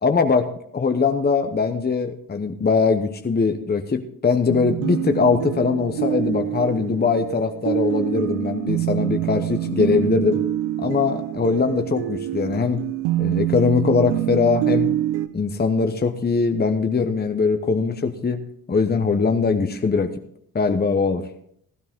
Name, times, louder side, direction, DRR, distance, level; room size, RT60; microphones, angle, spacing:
voice 1, 0.0-10.4 10.8-12.8 13.2-14.9 15.3-18.4 18.7-20.1 20.5-21.2, left 5 dB, 25° left, 7 dB, 1.0 m, -21 dB
sound 1, 4.5-15.3, right 14 dB, 85° right, 0.8 m, -26 dB
15.5 x 10.5 x 3.6 m, 0.68 s
hypercardioid pair, 50°, 42 cm